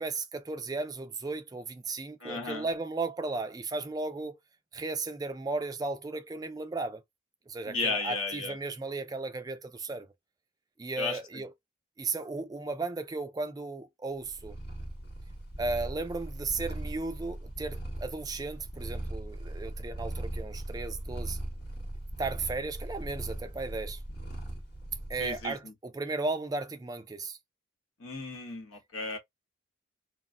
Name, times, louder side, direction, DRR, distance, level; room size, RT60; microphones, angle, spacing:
voice 1, 0.0-4.4 4.7-7.0 7.5-10.1 10.8-11.5 12.0-14.6 15.6-21.4 22.2-24.0 25.1-27.4, right 3 dB, 20° right, 0.3 m, -35 dB
voice 2, 2.2-2.7 7.7-8.5 11.0-11.4 25.2-25.7 28.0-29.2, left 3 dB, 85° left, 1.2 m, -34 dB
Purr, 14.2-25.5, right 1 dB, 50° left, 1.1 m, -39 dB
2.3 x 2.2 x 3.5 m
head